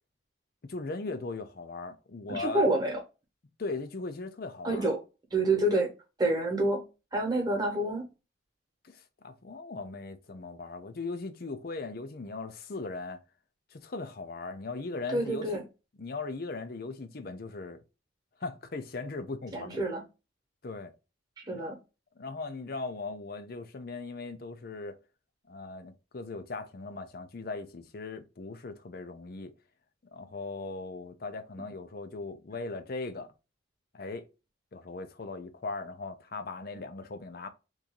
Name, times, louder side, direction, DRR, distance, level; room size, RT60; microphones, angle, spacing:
voice 1, 0.6-2.6 3.6-4.9 8.8-13.2 13.7-15.6 16.0-17.8 18.4-19.7 20.6-20.9 21.5-21.7 22.2-25.0 25.5-29.5 30.1-33.3 33.9-34.2 34.7-37.5, left 3 dB, 50° left, 0.5 m, -39 dB
voice 2, 2.3-3.0 4.6-5.0 5.3-5.9 6.2-6.8 7.1-8.0 15.1-15.6 19.5-20.0 21.5-21.8, right 2 dB, 20° right, 1.1 m, -27 dB
3.0 x 2.7 x 3.6 m
head